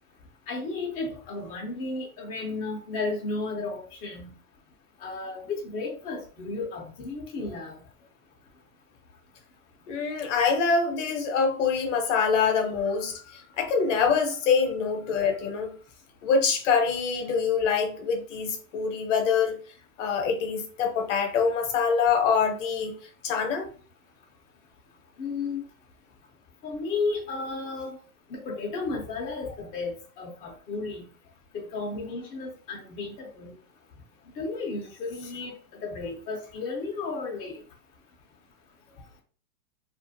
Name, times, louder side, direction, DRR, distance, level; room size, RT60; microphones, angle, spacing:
voice 1, 0.5-4.3 5.0-7.8 25.2-25.6 26.6-28.0 28.3-31.1 31.5-33.5 34.4-37.6, left 3 dB, 20° left, 0.5 m, -33 dB
voice 2, 9.9-15.7 16.2-19.6 20.0-23.0 23.2-23.6, left 5 dB, 55° left, 0.8 m, -25 dB
2.4 x 2.3 x 2.6 m
hypercardioid pair, 130°, 45 cm